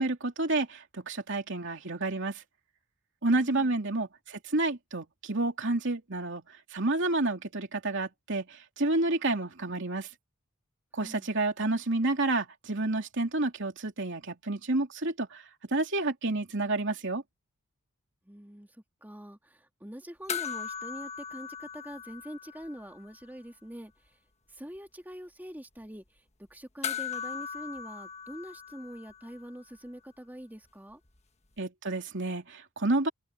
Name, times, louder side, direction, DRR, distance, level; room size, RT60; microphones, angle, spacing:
voice 1, 0.0-2.4 3.2-6.4 6.7-10.1 10.9-15.4 15.7-17.2 31.6-33.1, right 2 dB, 55° right, 3.1 m, -29 dB
voice 2, 11.0-11.3 18.3-18.7 19.0-23.9 24.5-26.0 26.5-31.0, equal, 10° right, 2.5 m, -44 dB
sound 1, 20.3-23.0 23.2-23.3 26.8-29.4 31.6-31.7, left 7 dB, 30° left, 1.4 m, -38 dB
open air
head